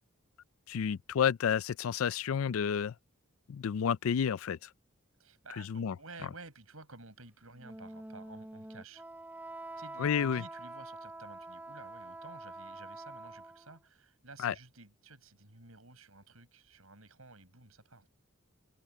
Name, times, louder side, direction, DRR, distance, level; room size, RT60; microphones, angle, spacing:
voice 1, 0.7-2.9 3.5-4.6 5.7-5.9 10.0-10.4 14.4-14.5, left 7 dB, 75° left, 0.4 m, -30 dB
voice 2, 5.2-9.0 9.8-18.1, right 3 dB, 90° right, 7.1 m, -53 dB
Wind instrument woodwind instrument, 7.6-13.8, right 2 dB, 10° right, 0.7 m, -46 dB
head